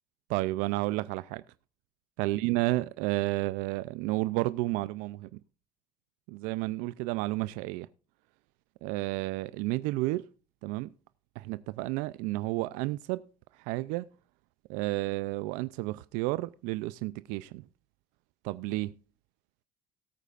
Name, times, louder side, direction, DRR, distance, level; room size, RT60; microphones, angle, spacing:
voice 1, 0.3-1.4 2.2-5.3 6.3-7.9 8.8-10.3 10.6-10.9 11.4-13.2 13.6-14.1 14.7-17.6 18.4-18.9, right 19 dB, 85° right, 0.4 m, -31 dB
18.5 x 8.3 x 2.4 m
cardioid pair, 130°, 13 cm